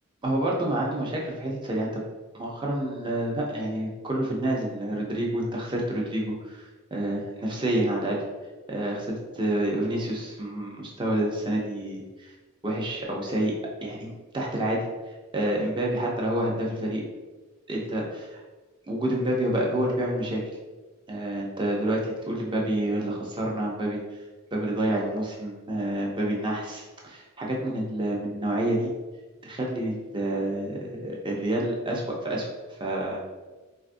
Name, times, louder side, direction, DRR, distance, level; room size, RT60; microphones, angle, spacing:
voice 1, 0.2-2.0 2.3-8.2 8.7-12.3 12.6-13.5 13.8-14.8 15.3-17.0 17.7-18.4 18.9-20.4 21.1-24.0 24.5-28.9 29.4-32.5 32.8-33.2, right 1 dB, 25° right, -2 dB, 0.5 m, -28 dB
3.3 x 2.4 x 2.5 m, 1.2 s
head